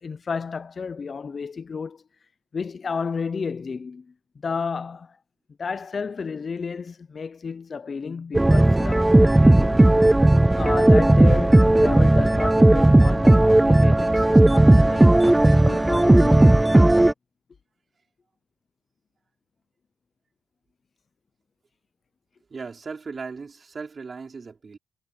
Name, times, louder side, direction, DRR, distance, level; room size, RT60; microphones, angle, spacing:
voice 1, 0.0-2.0 2.5-4.1 4.4-5.2 5.6-9.8 10.6-16.6, left 5 dB, 40° left, 0.7 m, -32 dB
sound 1, 8.3-17.1, right 1 dB, 10° right, 0.4 m, -15 dB
voice 2, 22.5-24.8, right 4 dB, 35° right, 4.6 m, -37 dB
cardioid pair, 90°, 0 cm